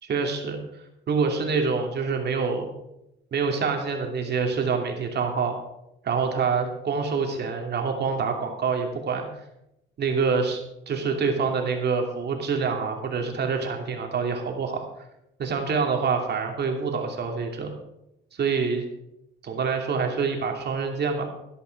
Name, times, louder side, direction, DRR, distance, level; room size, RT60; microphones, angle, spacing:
voice 1, 0.0-0.6 1.1-2.7 3.3-5.6 6.0-9.3 10.0-10.6 10.9-14.9 15.4-17.7 18.4-18.9 19.4-21.3, right 5 dB, 55° right, 3 dB, 2.6 m, -26 dB
12.0 x 11.5 x 4.6 m, 0.86 s
cardioid pair, 90°, 20 cm